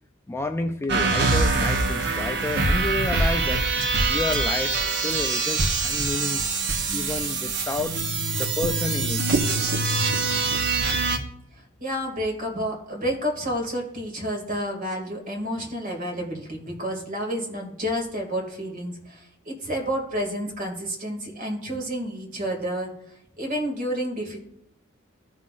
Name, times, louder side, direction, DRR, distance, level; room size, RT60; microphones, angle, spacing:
voice 1, 0.3-3.7 4.1-6.4 6.9-8.0 8.4-9.2, left 2 dB, 10° left, 6 dB, 0.3 m, -30 dB
sound 1, 0.9-11.2, right 3 dB, 60° right, 1.0 m, -24 dB
voice 2, 11.8-22.9 23.4-24.4, equal, 40° right, 1 dB, 2.3 m, -30 dB
14.5 x 5.6 x 2.5 m, 0.79 s
head